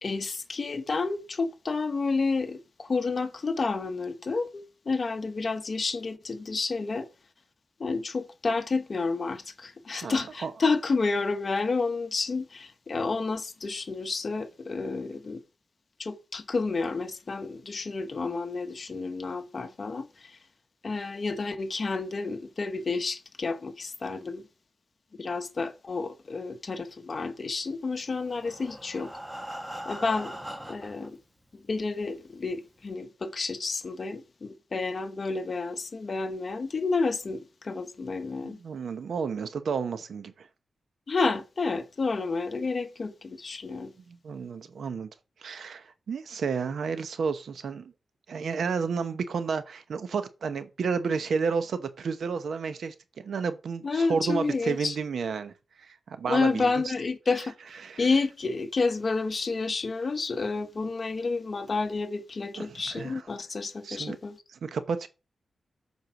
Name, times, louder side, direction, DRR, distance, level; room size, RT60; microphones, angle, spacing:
voice 1, 0.0-7.1 7.8-15.4 16.0-20.4 20.8-24.4 25.2-29.1 29.8-30.3 30.7-31.2 31.7-38.6 41.1-43.9 53.8-55.0 56.3-57.5 58.0-64.4, left 4 dB, 45° left, 1.1 m, -30 dB
voice 2, 10.0-10.5 38.4-40.5 44.1-45.1 45.4-47.9 48.3-55.5 55.8-56.6 57.8-58.0 62.5-63.2 63.8-64.2 64.6-65.1, right 5 dB, 80° right, 0.9 m, -31 dB
Breathing, 28.1-31.1 31.8-31.9 32.3-32.4 32.8-32.9, equal, 5° right, 1.5 m, -40 dB
8.2 x 4.6 x 5.8 m
cardioid pair, 85°, 0 cm